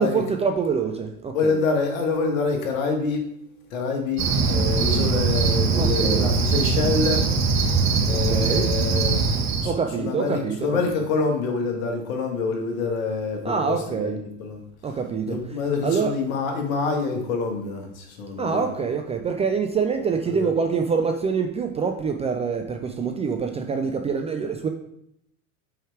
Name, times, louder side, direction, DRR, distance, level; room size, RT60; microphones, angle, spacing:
voice 1, 0.0-1.6 5.8-6.3 8.1-8.7 9.6-11.1 13.4-14.2 14.8-16.2 18.4-24.7, right 5 dB, 15° right, 4 dB, 0.3 m, -26 dB
voice 2, 1.3-3.2 3.7-7.2 8.1-9.2 9.6-9.7 10.0-14.7 15.3-18.7 20.3-20.5, left 4 dB, 65° left, 3 dB, 1.6 m, -26 dB
Cricket, 4.2-9.7, right 4 dB, 40° right, 1.5 m, -21 dB
4.8 x 4.6 x 4.6 m, 0.76 s
hypercardioid pair, 85°, 44 cm